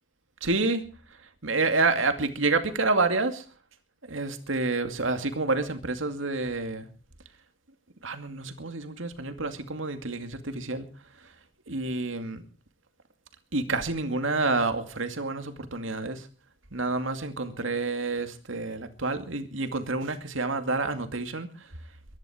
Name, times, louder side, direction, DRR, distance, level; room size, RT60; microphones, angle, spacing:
voice 1, 0.4-0.9 1.4-3.4 4.1-6.9 8.0-10.9 11.7-12.4 13.5-16.3 16.7-21.7, right 3 dB, 90° right, 8 dB, 2.3 m, -28 dB
22.5 x 11.0 x 5.0 m, 0.38 s
head